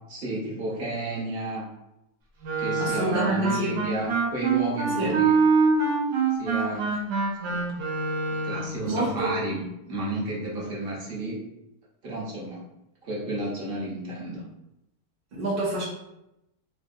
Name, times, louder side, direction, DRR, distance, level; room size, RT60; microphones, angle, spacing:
voice 1, 0.1-1.7 2.6-5.4 6.4-6.9 7.4-7.6 8.3-9.6 9.9-11.4 12.0-12.6 13.0-14.4, right 2 dB, 45° right, -5 dB, 0.9 m, -32 dB
Wind instrument woodwind instrument, 2.4-8.8, right 4 dB, 85° right, 1.2 m, -25 dB
voice 2, 2.8-3.8 5.0-5.2 8.9-9.3 15.3-15.8, right 1 dB, 60° right, -6 dB, 0.5 m, -27 dB
3.2 x 2.6 x 2.6 m, 0.87 s
omnidirectional pair, 1.8 m